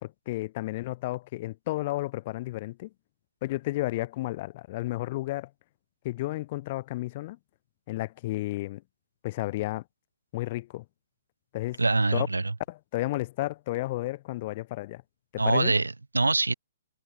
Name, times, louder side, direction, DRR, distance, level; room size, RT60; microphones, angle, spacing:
voice 1, 0.0-2.9 3.4-5.5 6.0-7.4 7.9-8.8 9.2-9.8 10.3-10.8 11.5-11.8 12.1-12.3 12.7-15.0 15.3-15.7, left 18 dB, 35° left, 2.2 m, -32 dB
voice 2, 11.8-12.5 15.4-16.5, right 3 dB, 80° right, 1.2 m, -24 dB
figure-of-eight pair, 125°, 0 cm